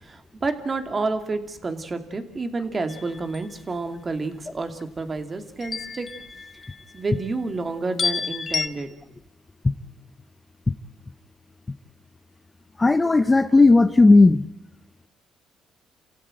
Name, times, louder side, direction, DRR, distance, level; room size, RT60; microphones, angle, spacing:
voice 1, 0.0-6.1 6.9-8.9, right 3 dB, 30° right, 8 dB, 2.8 m, -29 dB
sound 1, 2.9-3.5 5.6-7.0 8.0-8.7, left 5 dB, 40° left, 1.5 m, -30 dB
voice 2, 12.8-14.5, left 3 dB, 20° left, 13 dB, 0.9 m, -15 dB
28.0 x 16.0 x 9.1 m, 0.83 s
cardioid pair, 85°, 0 cm